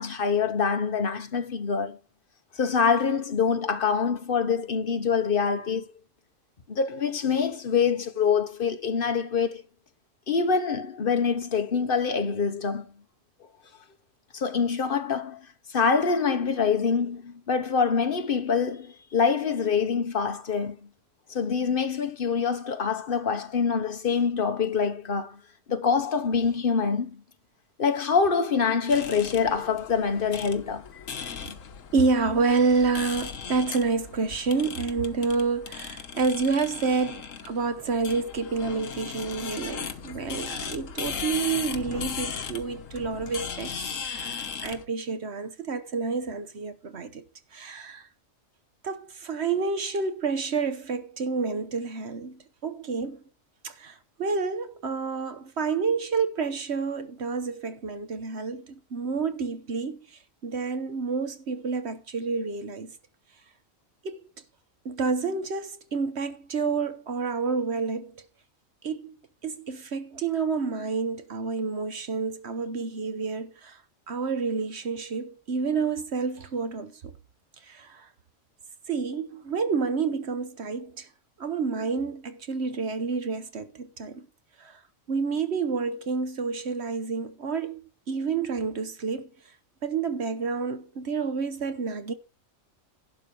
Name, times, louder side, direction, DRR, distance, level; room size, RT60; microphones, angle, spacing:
voice 1, 0.0-2.0 2.5-5.9 6.7-9.6 10.3-12.9 14.3-15.4 15.7-20.8 21.3-25.4 25.7-27.2 27.8-30.8 31.2-31.3, left 6 dB, 45° left, 1.3 m, -25 dB
sound 1, 28.9-44.8, left 6 dB, 80° left, 1.4 m, -37 dB
voice 2, 31.9-47.2 47.5-48.1 48.8-53.2 53.6-62.9 64.0-64.2 64.8-68.2 68.8-69.2 69.4-73.8 74.1-77.1 77.7-78.1 78.9-81.1 81.4-84.3 84.6-84.8 85.1-87.8 88.1-89.3 89.8-92.1, right 4 dB, 60° right, 1.2 m, -29 dB
11.5 x 4.6 x 7.0 m
omnidirectional pair, 1.3 m